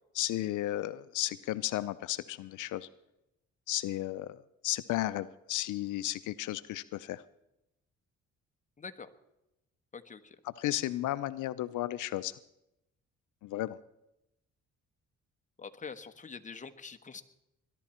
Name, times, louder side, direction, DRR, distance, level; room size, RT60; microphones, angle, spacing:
voice 1, 0.2-2.9 3.7-7.2 10.4-12.4 13.4-13.8, left 15 dB, 80° left, 14 dB, 0.6 m, -34 dB
voice 2, 8.8-9.1 9.9-10.4 15.6-17.2, left 5 dB, 25° left, 7 dB, 1.2 m, -45 dB
21.0 x 11.5 x 4.3 m, 0.88 s
cardioid pair, 90°, 30 cm